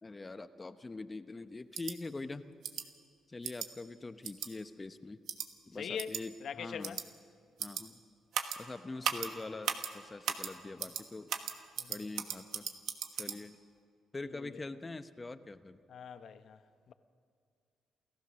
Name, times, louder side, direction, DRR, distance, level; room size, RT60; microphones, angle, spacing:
voice 1, 0.0-2.5 3.3-5.2 5.7-7.0 7.6-8.0 8.6-11.3 11.9-12.6 13.1-13.6 14.1-15.8, left 3 dB, 20° left, 0.8 m, -44 dB
sound 1, 1.7-1.9 2.6-2.8 3.4-3.7 4.2-4.5 5.3-5.5 6.0-6.2 6.8-7.0 7.6-7.8 8.3-8.6 9.0-9.3 9.6-9.9 10.2-10.5 10.8-11.0 11.3-13.4, right 8 dB, 80° right, 1.2 m, -36 dB
voice 2, 5.7-6.1 6.4-7.0 11.8-12.0 14.3-14.6 15.9-16.6 16.9-17.0, left 7 dB, 60° left, 0.9 m, -42 dB
28.0 x 14.5 x 6.3 m
cardioid pair, 90°, 0 cm